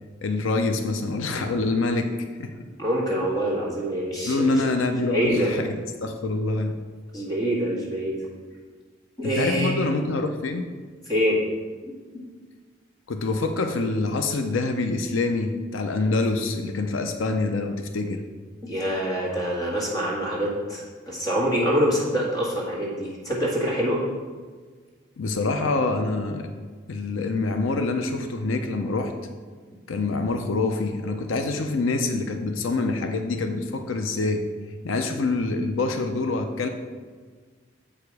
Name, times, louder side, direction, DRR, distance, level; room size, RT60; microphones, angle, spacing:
voice 1, 0.2-2.1 2.4-2.5 4.2-6.7 9.2-10.7 13.1-18.2 25.2-26.5 26.9-29.1 29.9-34.4 34.8-36.7, left 3 dB, 90° left, 6 dB, 0.6 m, -26 dB
voice 2, 2.8-4.6 5.1-5.5 7.1-8.1 9.2-9.8 11.0-11.4 11.8-11.9 18.6-24.0, equal, 20° left, -5 dB, 1.8 m, -25 dB
7.5 x 4.9 x 4.7 m, 1.5 s
head